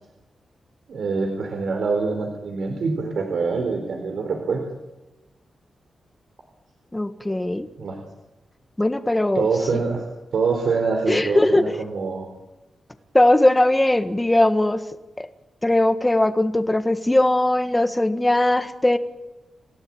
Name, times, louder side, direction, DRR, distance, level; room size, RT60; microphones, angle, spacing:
voice 1, 0.9-4.6 7.8-8.0 9.3-10.1 10.3-12.3, right 4 dB, 75° right, 3 dB, 4.2 m, -25 dB
voice 2, 6.9-7.7 8.8-9.5 11.1-11.8 13.1-14.9 15.2-15.3 15.6-19.0, left 1 dB, 10° left, 8 dB, 1.7 m, -19 dB
29.0 x 16.5 x 8.9 m, 1.0 s
wide cardioid pair, 140°, 0 cm